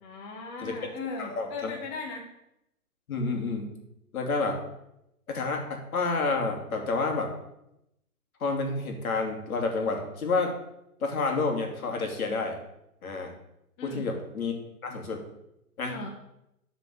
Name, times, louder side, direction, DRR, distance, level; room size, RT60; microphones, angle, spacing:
voice 1, 0.0-2.2 13.8-14.1 15.8-16.1, left 4 dB, 25° left, 1 dB, 1.3 m, -38 dB
voice 2, 1.2-1.7 3.1-3.7 4.1-4.6 5.3-7.3 8.4-10.5 11.0-12.6 13.0-13.3 13.8-14.5 14.8-15.2 15.8-15.9, left 3 dB, 65° left, 2 dB, 3.0 m, -29 dB
10.0 x 5.2 x 8.2 m, 0.83 s
hypercardioid pair, 150°, 45 cm